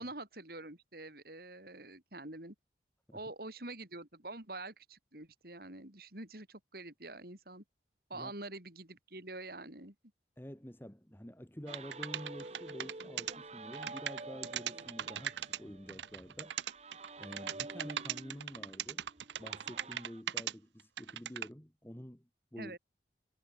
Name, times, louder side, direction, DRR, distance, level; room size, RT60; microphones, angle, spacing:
voice 1, 0.0-2.5 3.1-7.6 8.1-9.9 22.6-22.8, right 2 dB, 55° right, 4.8 m, -46 dB
voice 2, 10.4-16.6 17.2-19.1 19.4-22.8, equal, 10° left, 1.7 m, -49 dB
sound 1, 11.7-20.2, right 2 dB, 35° right, 1.7 m, -49 dB
sound 2, 11.7-13.3 13.7-15.6 15.9-20.5 20.8-21.5, right 10 dB, 75° right, 0.6 m, -39 dB
head